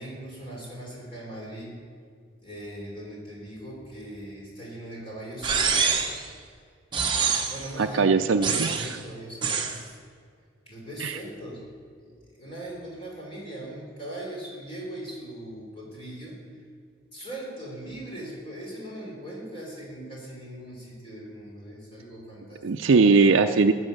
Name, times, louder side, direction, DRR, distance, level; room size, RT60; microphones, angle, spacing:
voice 1, 0.0-1.8 2.4-6.3 7.5-9.7 10.7-11.6 12.0-16.4 17.1-22.6, right 1 dB, 25° left, -3 dB, 4.0 m, -40 dB
sound 1, 5.4-6.2 6.9-7.7 8.4-9.0 9.4-9.8, right 5 dB, 25° right, 1.0 m, -25 dB
voice 2, 7.8-8.9 11.0-11.2 22.6-23.7, right 4 dB, 70° right, 7 dB, 0.5 m, -20 dB
14.0 x 8.1 x 6.5 m, 2.1 s
head